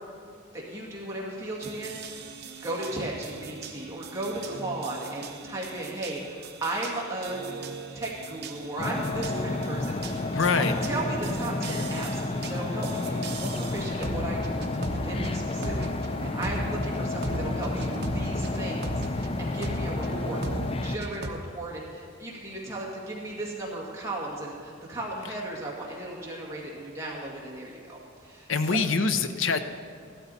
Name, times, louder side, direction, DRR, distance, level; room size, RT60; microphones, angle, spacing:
voice 1, 0.5-2.3 2.6-7.4 7.9-20.4 20.8-28.8, right 1 dB, 15° right, -4 dB, 2.1 m, -36 dB
sound 1, 1.6-19.3 19.6-21.3, right 2 dB, 50° right, 1.0 m, -38 dB
sound 2, 8.8-21.0, left 2 dB, 30° left, 0.5 m, -31 dB
voice 2, 10.3-10.7 28.5-29.6, left 4 dB, 75° left, 10 dB, 0.7 m, -24 dB
15.5 x 12.5 x 4.2 m, 2.3 s
head